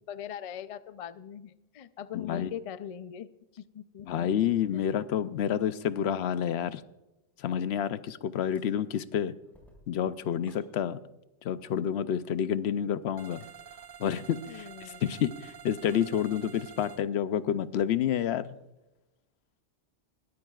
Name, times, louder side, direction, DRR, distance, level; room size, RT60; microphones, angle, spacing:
voice 1, 0.1-3.3 3.6-4.3 4.7-4.8 14.5-15.0, left 9 dB, 50° left, 14 dB, 0.4 m, -41 dB
voice 2, 2.1-2.5 4.1-6.8 7.4-9.3 9.9-11.0 11.4-13.4 14.0-14.7 15.0-18.6, left 9 dB, 75° left, 14 dB, 0.8 m, -29 dB
sound 1, 8.5-9.1 9.4-10.7 13.3-13.6 15.8-16.1, left 1 dB, ahead, 4.6 m, -60 dB
sound 2, 13.2-17.0, right 8 dB, 60° right, 0.8 m, -48 dB
21.0 x 13.5 x 2.4 m, 1.0 s
omnidirectional pair, 1.1 m